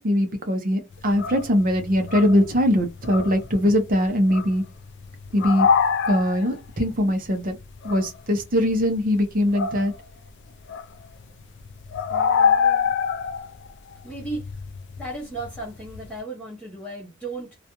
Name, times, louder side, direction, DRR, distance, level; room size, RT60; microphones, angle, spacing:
voice 1, 0.0-4.7 5.3-5.7 6.1-7.6 7.8-9.9, equal, 40° right, 0.6 m, -21 dB
sound 1, 0.9-10.3 10.6-16.1, left 6 dB, 50° left, 0.3 m, -27 dB
voice 2, 12.1-12.9 14.0-14.6 15.0-17.6, right 2 dB, 5° left, 0.7 m, -35 dB
2.3 x 2.2 x 2.8 m
head